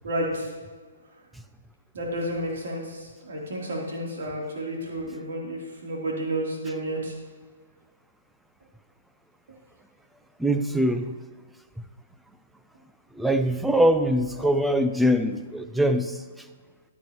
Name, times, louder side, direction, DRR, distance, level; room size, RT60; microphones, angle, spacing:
voice 1, 0.0-0.5 1.9-7.1 14.4-14.5, right 1 dB, 70° right, 3.5 m, -31 dB
voice 2, 10.4-11.1 13.2-16.2, equal, 5° right, 0.5 m, -23 dB
11.5 x 10.5 x 3.1 m
hypercardioid pair, 145°, 0 cm